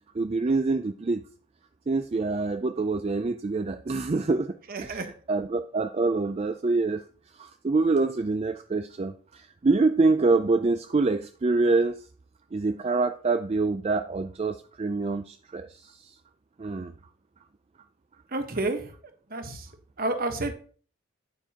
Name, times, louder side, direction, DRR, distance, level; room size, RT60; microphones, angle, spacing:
voice 1, 0.1-1.2 1.9-5.0 5.3-7.0 7.3-12.1 12.5-16.1 16.6-16.9, right 3 dB, 30° right, 8 dB, 0.4 m, -26 dB
voice 2, 4.7-5.1 18.3-18.9 19.3-19.7 20.0-20.5, right 2 dB, 45° right, 7 dB, 1.2 m, -30 dB
9.1 x 9.0 x 2.9 m, 0.43 s
head